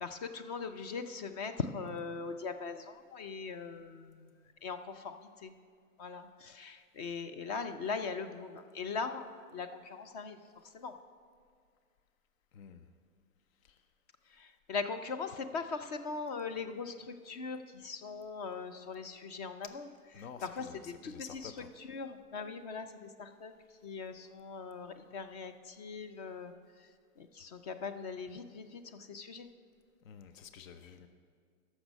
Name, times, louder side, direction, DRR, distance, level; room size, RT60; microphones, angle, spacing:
voice 1, 0.0-4.3 4.6-5.5 6.0-10.4 10.7-11.0 14.3-19.9 20.2-21.5 21.8-23.6 23.8-26.9 27.2-29.5, left 5 dB, 30° left, 9 dB, 0.4 m, -40 dB
voice 2, 12.5-12.9 13.6-13.8 20.1-21.7 30.0-31.1, left 7 dB, 65° left, 9 dB, 0.8 m, -50 dB
13.5 x 6.2 x 5.3 m, 2.1 s
hypercardioid pair, 120°, 44 cm